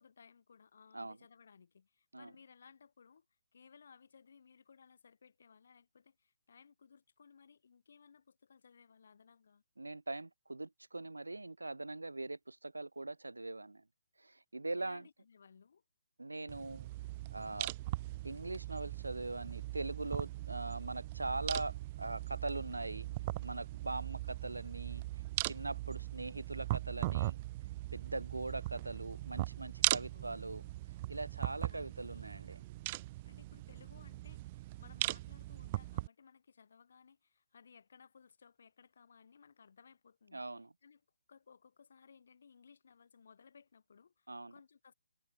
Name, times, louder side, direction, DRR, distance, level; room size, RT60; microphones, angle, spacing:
voice 1, 0.0-3.2 3.5-9.6 14.7-15.8 30.1-30.8 31.7-32.4 33.2-40.4 40.8-41.0 41.3-44.9, left 6 dB, 55° left, 5.0 m, -61 dB
voice 2, 9.8-13.8 14.2-15.0 16.2-16.9 17.3-17.7 18.2-23.1 23.4-25.0 25.4-27.4 27.9-30.6 31.1-32.6 40.3-40.7 44.3-44.5, right 2 dB, 80° right, 0.8 m, -41 dB
sound 1, 16.5-36.1, right 18 dB, 30° right, 0.5 m, -40 dB
figure-of-eight pair, 140°, 0 cm